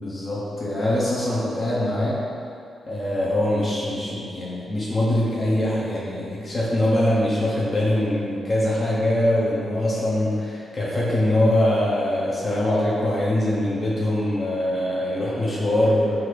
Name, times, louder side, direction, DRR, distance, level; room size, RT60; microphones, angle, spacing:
voice 1, 0.0-2.2 2.9-16.2, left 1 dB, 45° left, -7 dB, 0.6 m, -23 dB
3.7 x 2.5 x 3.1 m, 2.5 s
cardioid pair, 70°, 0 cm